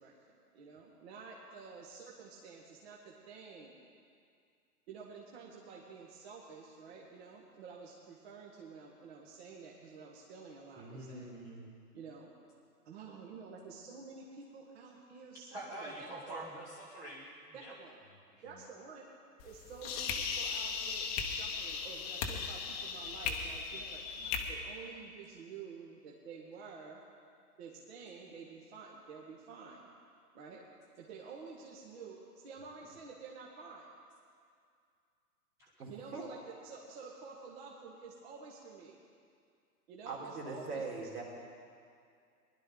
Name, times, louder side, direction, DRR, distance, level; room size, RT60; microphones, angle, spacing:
voice 1, 0.0-3.8 4.9-11.3 11.9-12.3 12.9-15.9 16.3-16.5 17.5-18.0 18.4-19.1 19.4-27.0 27.6-29.8 30.3-30.6 31.0-32.2 32.4-33.9 35.9-39.0 39.9-41.2, right 5 dB, 40° right, -3 dB, 1.7 m, -50 dB
voice 2, 10.8-11.7 15.5-17.7 18.4-18.5 35.6-35.7, right 1 dB, 5° right, -6 dB, 0.8 m, -46 dB
sound 1, 19.4-24.4, left 6 dB, 25° left, 1.0 m, -37 dB
voice 3, 35.8-36.2 40.1-41.2, right 4 dB, 70° right, -2 dB, 3.8 m, -41 dB
20.0 x 11.5 x 3.9 m, 2.3 s
hypercardioid pair, 140°, 48 cm